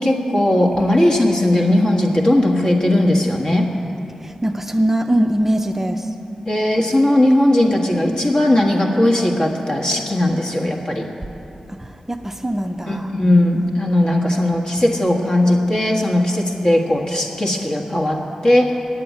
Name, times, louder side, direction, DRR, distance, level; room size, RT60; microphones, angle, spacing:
voice 1, 0.0-3.7 6.5-11.0 12.9-18.7, left 1 dB, 40° left, 0 dB, 1.5 m, -17 dB
voice 2, 4.2-6.1 11.7-13.1, right 1 dB, 15° right, 4 dB, 0.5 m, -22 dB
9.7 x 7.7 x 9.4 m, 3.0 s
wide cardioid pair, 90°, 2 cm